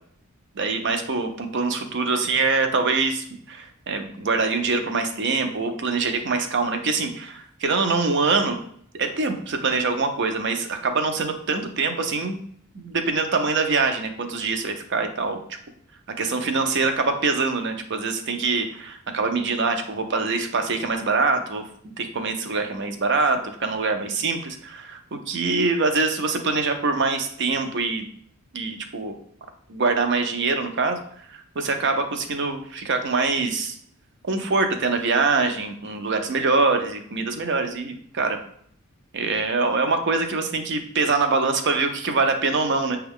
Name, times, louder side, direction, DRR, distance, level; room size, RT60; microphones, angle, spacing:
voice 1, 0.6-8.6 8.9-12.4 12.7-15.4 16.2-21.7 22.0-25.0 25.3-28.1 28.5-29.1 29.7-31.0 31.3-33.8 34.2-38.4 39.1-43.0, right 4 dB, 50° right, 6 dB, 0.6 m, -24 dB
6.2 x 2.3 x 3.5 m, 0.64 s
head